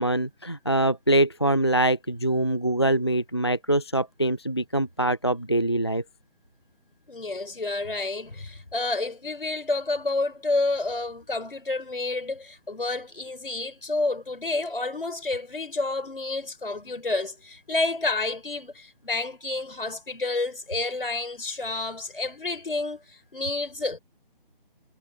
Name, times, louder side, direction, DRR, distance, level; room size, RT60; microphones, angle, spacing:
voice 1, 0.0-6.0, right 1 dB, 30° left, 0.3 m, -24 dB
voice 2, 7.1-24.0, left 2 dB, 70° left, 4.6 m, -29 dB
figure-of-eight pair, 155°, 29 cm